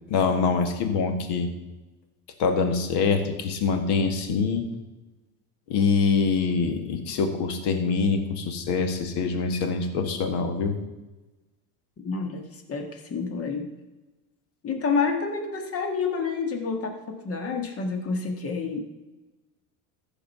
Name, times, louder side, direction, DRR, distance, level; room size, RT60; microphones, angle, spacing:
voice 1, 0.1-1.5 2.4-4.6 5.7-10.8, left 5 dB, 60° left, 6 dB, 1.8 m, -24 dB
voice 2, 12.0-12.4 12.7-13.7 14.6-18.8, left 5 dB, 30° left, 4 dB, 1.6 m, -28 dB
14.5 x 5.0 x 5.5 m, 1.1 s
supercardioid pair, 120°, 45 cm